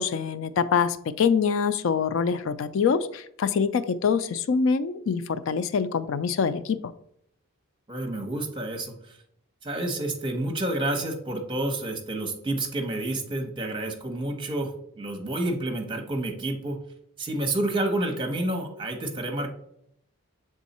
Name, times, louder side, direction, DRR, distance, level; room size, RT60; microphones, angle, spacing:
voice 1, 0.0-6.8, left 6 dB, 65° left, 13 dB, 0.3 m, -25 dB
voice 2, 7.9-9.2 9.6-16.8 17.2-19.5, right 1 dB, 25° right, 3 dB, 1.0 m, -29 dB
7.1 x 3.6 x 4.1 m, 0.73 s
head